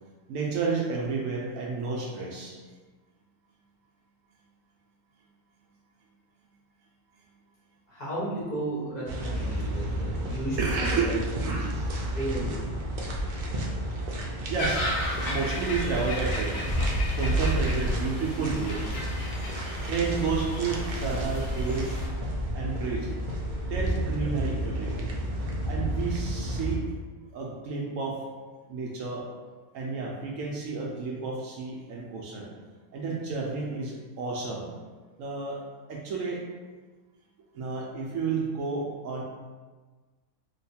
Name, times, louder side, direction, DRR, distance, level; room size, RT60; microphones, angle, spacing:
voice 1, 0.3-2.6 9.4-9.7 10.6-11.2 11.4-12.0 14.5-14.8 15.3-16.6 17.2-18.8 19.9-22.0 22.5-23.1 23.6-25.1 25.7-26.8 27.3-28.2 28.7-29.2 29.7-32.5 32.9-34.7 35.2-35.6 35.9-36.4 37.5-39.2, right 4 dB, 70° right, -2 dB, 0.9 m, -31 dB
voice 2, 7.9-11.2 12.1-12.6, right 1 dB, 35° left, -7 dB, 0.9 m, -33 dB
sound 1, 9.1-26.7, right 1 dB, 85° right, 0.4 m, -31 dB
sound 2, 14.6-22.1, left 1 dB, 70° left, 1.1 m, -35 dB
3.0 x 2.2 x 4.2 m, 1.4 s
omnidirectional pair, 1.5 m